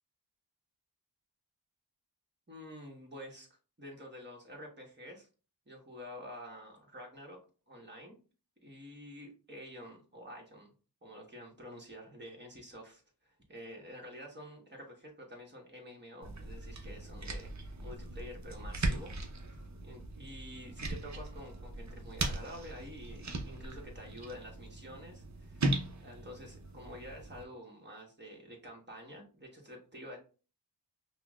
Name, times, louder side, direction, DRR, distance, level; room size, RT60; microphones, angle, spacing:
voice 1, 2.5-3.5 3.8-5.3 5.7-7.4 7.7-8.1 8.6-10.7 11.0-30.2, equal, 25° right, -1 dB, 1.2 m, -49 dB
sound 1, 16.2-27.4, right 2 dB, 40° right, 0.6 m, -39 dB
5.4 x 2.1 x 2.3 m, 0.36 s
wide cardioid pair, 65°, 43 cm